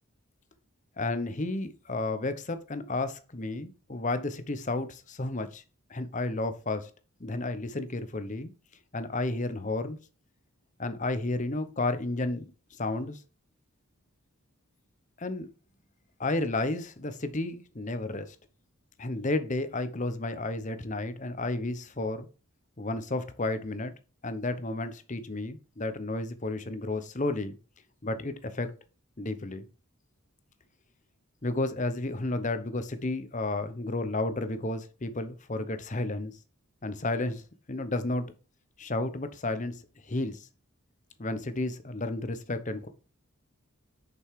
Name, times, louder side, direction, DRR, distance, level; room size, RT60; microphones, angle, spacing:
voice 1, 1.0-5.6 5.9-6.9 7.2-8.5 8.9-10.0 10.8-12.5 12.8-13.2 15.2-15.5 16.2-18.4 19.0-22.3 22.8-23.9 24.2-27.6 28.0-28.7 29.2-29.6 31.4-36.3 36.8-37.4 37.7-38.3 38.8-39.8 40.1-40.5 41.2-42.9, left 2 dB, 35° left, 0.9 m, -32 dB
6.8 x 5.3 x 4.7 m
head